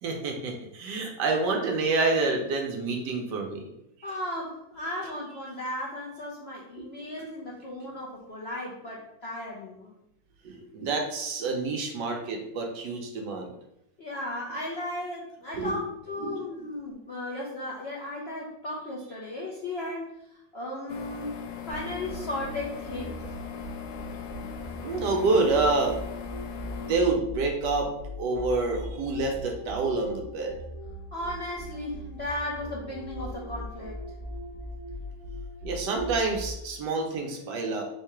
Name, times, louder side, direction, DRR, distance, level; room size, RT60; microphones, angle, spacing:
voice 1, 0.0-3.6 6.8-6.9 10.4-13.5 15.5-15.7 16.2-16.4 24.8-25.9 26.7-27.9 28.2-30.5 35.6-37.8, right 3 dB, 70° right, 2 dB, 1.3 m, -27 dB
voice 2, 4.0-10.0 14.0-20.2 20.5-21.4 21.7-23.2 31.1-34.0, left 1 dB, 60° left, -5 dB, 0.6 m, -35 dB
sound 1, 20.9-27.0, left 8 dB, 80° left, 1.2 m, -39 dB
sound 2, 21.7-36.8, equal, 30° left, 1.2 m, -40 dB
3.6 x 2.8 x 4.5 m, 0.81 s
omnidirectional pair, 2.0 m